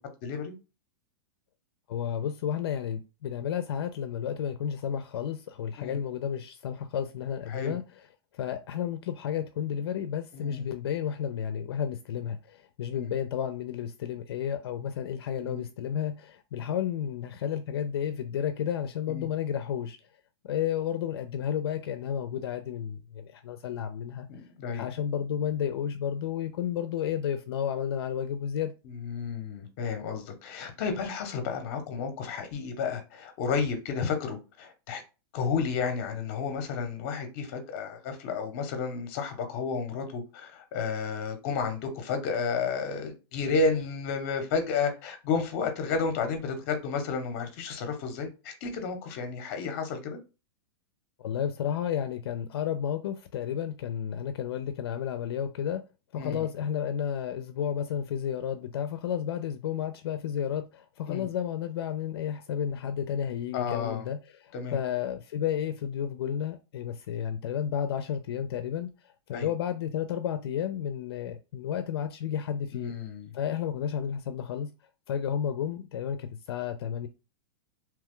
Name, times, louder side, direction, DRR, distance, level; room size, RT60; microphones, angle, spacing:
voice 1, 0.2-0.5 5.8-6.0 7.5-7.8 10.3-10.6 12.9-13.1 15.4-15.6 19.1-19.3 24.3-24.9 28.9-35.0 35.3-50.2 56.2-56.4 61.1-61.2 63.5-64.0 64.5-64.8 69.3-69.5 72.7-73.3, left 5 dB, 30° left, 0.7 m, -32 dB
voice 2, 1.9-7.8 8.3-20.0 20.4-24.3 24.7-28.7 51.2-55.8 56.1-68.9 69.3-72.9 73.3-74.7 75.1-77.1, left 9 dB, 70° left, 0.4 m, -32 dB
2.9 x 2.2 x 3.6 m
supercardioid pair, 175°, 14 cm